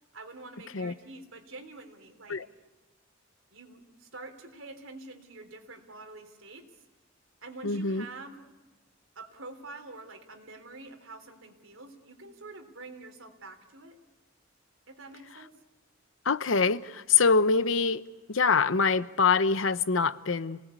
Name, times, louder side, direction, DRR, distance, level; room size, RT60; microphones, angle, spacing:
voice 1, 0.1-2.4 3.5-6.8 7.4-8.4 9.2-14.0 14.9-15.6, right 3 dB, 90° right, 3.5 m, -46 dB
voice 2, 7.6-8.0 16.2-20.6, left 5 dB, 75° left, 0.9 m, -25 dB
29.0 x 19.0 x 8.5 m
head